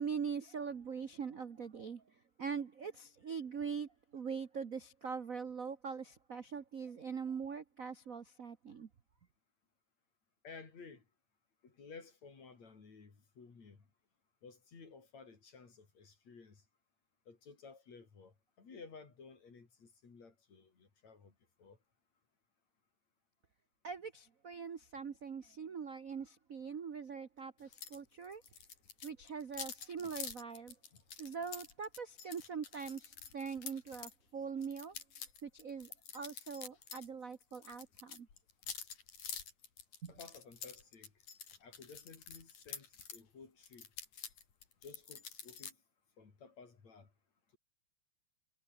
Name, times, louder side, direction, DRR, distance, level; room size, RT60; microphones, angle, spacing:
voice 1, 0.0-8.9 23.8-28.4 29.0-30.7 31.2-34.9 35.4-38.3 40.0-40.1, right 6 dB, 70° right, 0.8 m, -42 dB
voice 2, 10.4-11.0 11.6-13.9 14.4-16.6 17.3-21.8 30.0-30.2 30.9-31.0 40.1-41.1 41.6-43.9 44.8-45.8 46.2-47.1, left 4 dB, 65° left, 5.8 m, -55 dB
sound 1, 27.7-28.0 28.2-34.1 34.6-37.1 37.3-43.2 43.6-45.7, left 7 dB, 85° left, 4.9 m, -48 dB
omnidirectional pair, 3.4 m